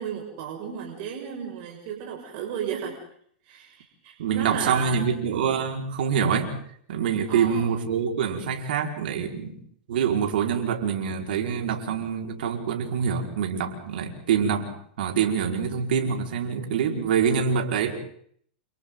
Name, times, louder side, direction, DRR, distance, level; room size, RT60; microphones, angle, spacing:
voice 1, 0.0-3.0 3.4-5.1 7.3-7.7, right 8 dB, 50° right, 0 dB, 6.3 m, -34 dB
voice 2, 4.2-6.5 6.9-9.6 9.9-17.9, right 7 dB, 70° right, 2 dB, 5.1 m, -25 dB
29.5 x 29.0 x 4.0 m, 0.62 s
hypercardioid pair, 120°, 5 cm